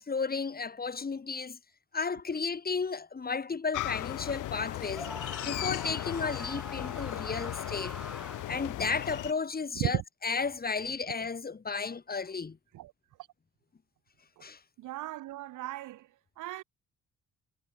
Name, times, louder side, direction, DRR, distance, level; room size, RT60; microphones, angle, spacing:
voice 1, 0.0-1.6 1.9-5.1 5.4-7.9 8.5-12.6 14.4-14.6, left 5 dB, 30° left, 3.2 m, -33 dB
sound 1, 3.7-9.3, left 16 dB, 90° left, 2.3 m, -36 dB
Screaming, 4.9-8.7, equal, ahead, 5.3 m, -44 dB
voice 2, 14.8-16.1 16.4-16.6, right 15 dB, 85° right, 1.9 m, -35 dB
cardioid pair, 90°, 30 cm